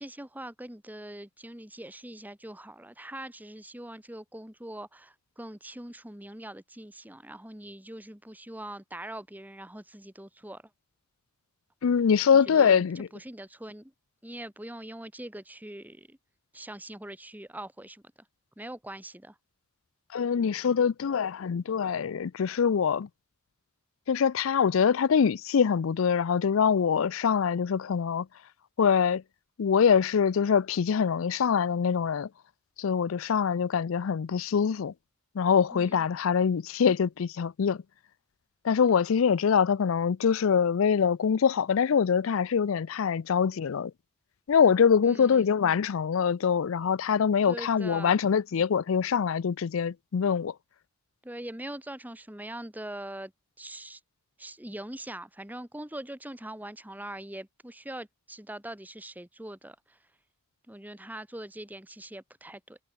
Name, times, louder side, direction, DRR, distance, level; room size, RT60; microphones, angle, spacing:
voice 1, 0.0-10.6 12.5-12.9 13.1-13.9 14.2-16.2 16.5-18.0 18.6-19.4 35.7-36.0 45.0-45.5 47.4-48.2 51.2-53.3 53.6-54.0 54.4-60.0 60.7-62.8, right 1 dB, 10° right, 1.6 m, -42 dB
voice 2, 11.8-13.1 20.1-23.1 24.1-28.3 28.8-29.2 29.6-32.3 32.8-34.9 35.3-37.8 38.6-43.9 44.5-50.5, left 6 dB, 75° left, 0.4 m, -24 dB
head